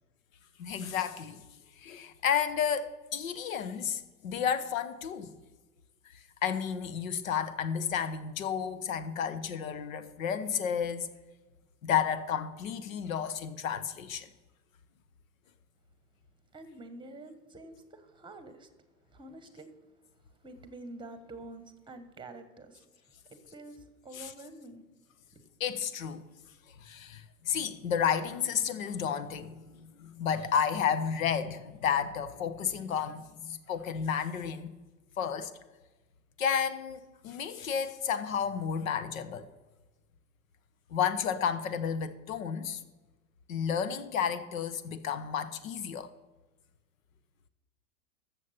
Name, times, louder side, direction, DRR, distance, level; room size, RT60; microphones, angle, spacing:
voice 1, 0.6-1.4 1.8-5.3 6.4-11.1 11.8-14.3 24.2-24.3 25.6-26.2 26.8-34.7 35.2-35.5 36.4-39.5 40.9-42.8 43.5-46.1, left 7 dB, 65° left, 1.1 m, -32 dB
voice 2, 16.5-18.7 19.1-19.8 20.4-22.8 23.3-24.8 25.3-25.4, right 2 dB, 10° right, 1.3 m, -47 dB
14.0 x 7.3 x 5.7 m
figure-of-eight pair, 95°, 44 cm